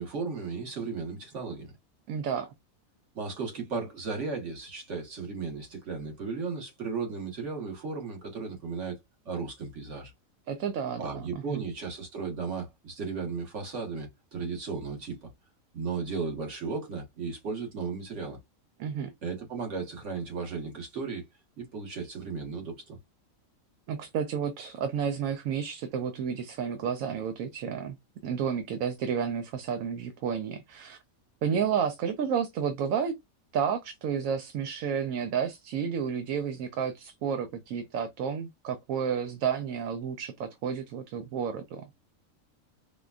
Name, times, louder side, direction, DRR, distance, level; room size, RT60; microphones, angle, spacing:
voice 1, 0.0-1.7 3.1-9.0 9.2-10.1 11.0-15.3 15.7-18.4 19.2-21.2 21.6-23.0, right 4 dB, 60° right, 1.7 m, -35 dB
voice 2, 2.1-2.5 10.5-11.6 18.8-19.1 23.9-28.0 28.2-31.0 31.4-33.1 33.5-41.9, right 7 dB, 75° right, 1.0 m, -31 dB
4.9 x 2.3 x 2.4 m
omnidirectional pair, 1.4 m